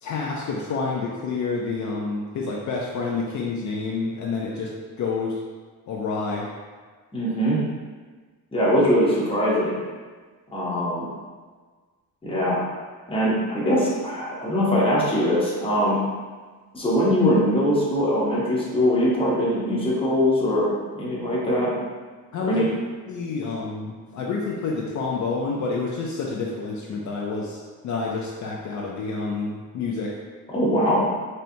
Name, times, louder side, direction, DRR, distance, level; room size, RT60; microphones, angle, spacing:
voice 1, 0.0-4.7 5.0-5.3 5.9-6.5 22.3-22.7 23.0-27.6 27.8-30.1, left 4 dB, 55° left, -3 dB, 0.5 m, -28 dB
voice 2, 7.1-7.6 8.5-9.8 10.5-11.1 12.2-12.7 13.1-16.0 16.7-20.7 21.0-21.7 22.4-22.7 30.5-31.1, equal, 15° left, -7 dB, 0.9 m, -22 dB
4.2 x 3.3 x 2.6 m, 1.4 s
wide cardioid pair, 170°, 35 cm